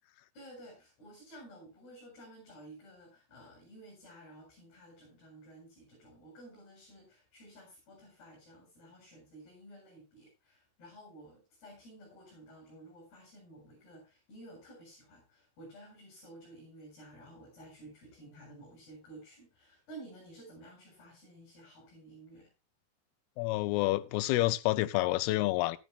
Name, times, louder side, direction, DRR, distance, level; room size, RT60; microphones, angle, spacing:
voice 1, 0.3-22.5, right 1 dB, 60° left, 9.9 m, -53 dB
voice 2, 23.4-25.8, left 18 dB, 80° left, 2.4 m, -28 dB
14.5 x 14.0 x 2.5 m
omnidirectional pair, 5.1 m